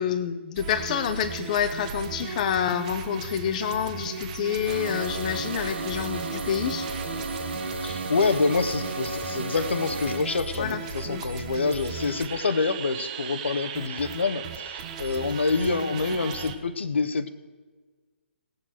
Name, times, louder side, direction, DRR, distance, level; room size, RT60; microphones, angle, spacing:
voice 1, 0.0-6.9 10.5-11.2, left 8 dB, 40° left, 8 dB, 0.8 m, -28 dB
sound 1, 0.6-16.6, right 6 dB, 35° right, 1.1 m, -37 dB
sound 2, 4.7-10.2, right 2 dB, 65° right, 1.7 m, -33 dB
voice 2, 7.8-17.3, left 4 dB, 70° left, 11 dB, 1.0 m, -27 dB
18.0 x 7.8 x 6.3 m, 1.4 s
figure-of-eight pair, 140°, 6 cm